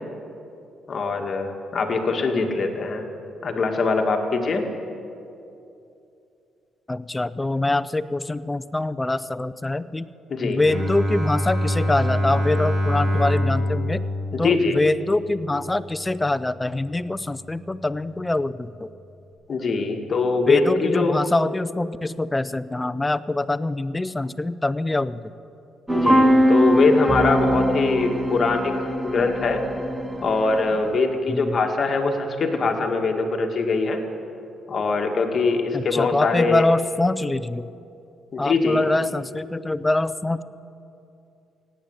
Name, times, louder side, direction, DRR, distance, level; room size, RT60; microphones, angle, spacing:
voice 1, 0.9-3.0 3.4-4.6 10.3-10.6 14.3-14.8 19.5-21.2 25.9-29.6 30.2-34.0 34.7-36.6 38.3-38.8, left 4 dB, 45° left, 3 dB, 1.9 m, -22 dB
voice 2, 6.9-10.1 10.4-14.0 14.4-18.9 20.5-25.2 31.3-31.6 35.7-37.7 38.4-40.4, left 2 dB, 15° left, 15 dB, 0.5 m, -24 dB
Bowed string instrument, 10.6-16.3, left 1 dB, 40° right, 2.9 m, -25 dB
sound 1, 25.9-30.9, equal, 10° right, 1.0 m, -21 dB
17.5 x 9.0 x 8.0 m, 2.7 s
cardioid pair, 90°, 0 cm